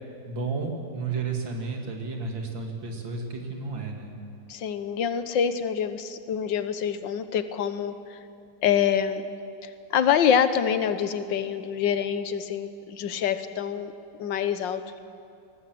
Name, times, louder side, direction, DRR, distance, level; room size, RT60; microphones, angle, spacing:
voice 1, 0.3-4.2, right 4 dB, 70° right, 2 dB, 3.0 m, -32 dB
voice 2, 4.5-8.2 8.6-9.2 9.6-13.9 14.2-15.0, left 8 dB, 70° left, 11 dB, 1.6 m, -26 dB
21.5 x 17.5 x 7.8 m, 2.5 s
omnidirectional pair, 2.1 m